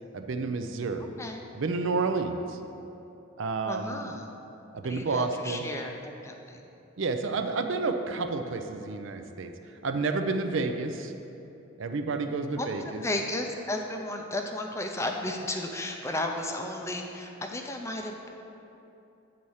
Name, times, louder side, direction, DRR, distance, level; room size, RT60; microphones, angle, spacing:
voice 1, 0.1-1.2 1.5-2.6 3.4-4.0 4.7-5.7 7.0-11.1 11.8-13.0, right 3 dB, 65° right, 7 dB, 0.5 m, -30 dB
voice 2, 3.7-4.3 4.8-6.6 12.6-18.3, left 1 dB, 15° left, 3 dB, 0.4 m, -34 dB
8.7 x 4.2 x 6.3 m, 2.9 s
head